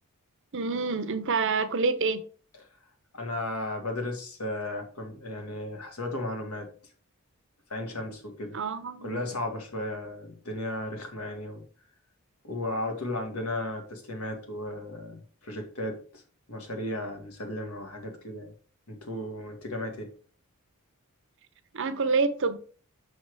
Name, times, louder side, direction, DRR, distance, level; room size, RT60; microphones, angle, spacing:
voice 1, 0.5-2.2 8.5-9.2 21.7-22.6, right 4 dB, 55° right, 0.7 m, -27 dB
voice 2, 3.1-6.7 7.7-8.6 9.0-11.6 12.4-16.2 16.5-18.5 18.9-20.1, left 1 dB, 75° left, 1.8 m, -35 dB
6.5 x 4.3 x 4.7 m
head